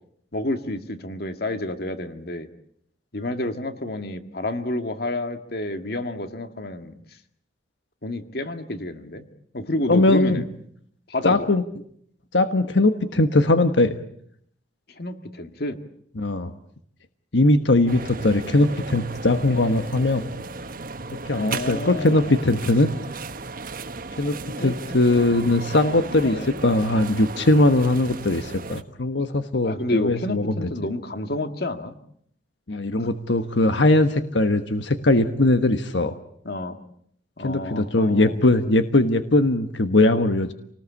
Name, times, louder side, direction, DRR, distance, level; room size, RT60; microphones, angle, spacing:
voice 1, 0.3-2.5 3.1-7.0 8.0-9.3 9.5-10.5 11.1-11.5 14.9-15.8 21.4-22.3 24.6-24.7 26.2-26.6 29.6-31.9 33.0-33.1 36.4-36.8 37.4-38.4, left 1 dB, 60° left, 8 dB, 2.0 m, -29 dB
voice 2, 9.9-10.4 11.2-11.6 12.3-14.0 16.2-16.5 17.3-20.2 21.3-22.9 24.2-24.4 24.6-26.4 26.6-30.7 32.7-36.1 37.4-40.5, left 2 dB, 85° left, 9 dB, 1.3 m, -20 dB
sound 1, 17.9-28.8, right 3 dB, 50° right, 1.2 m, -35 dB
28.0 x 19.5 x 8.5 m, 0.69 s
head